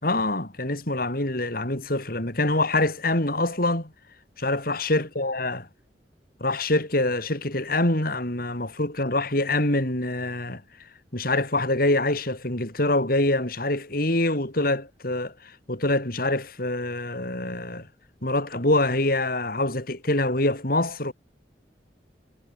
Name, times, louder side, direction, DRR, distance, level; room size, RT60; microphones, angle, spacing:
voice 1, 0.0-3.9 4.4-5.7 6.4-10.6 11.1-17.9 18.2-21.1, left 2 dB, 55° left, 4.9 m, -25 dB
head